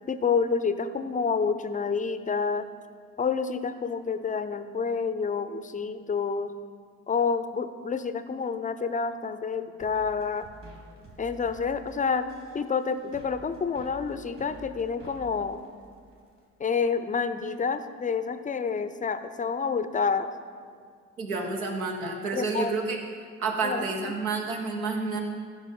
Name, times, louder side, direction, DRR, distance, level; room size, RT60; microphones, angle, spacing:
voice 1, 0.1-2.7 3.2-6.5 7.1-10.5 11.2-12.3 12.5-15.6 16.6-20.3 22.3-22.7 23.6-23.9, left 5 dB, 20° left, 11 dB, 0.6 m, -28 dB
sound 1, 9.8-16.4, equal, 50° right, 2.8 m, -50 dB
voice 2, 21.2-23.0 23.4-25.2, right 4 dB, 75° right, 2 dB, 1.4 m, -29 dB
15.0 x 5.4 x 5.5 m, 2.2 s
figure-of-eight pair, 50°, 42 cm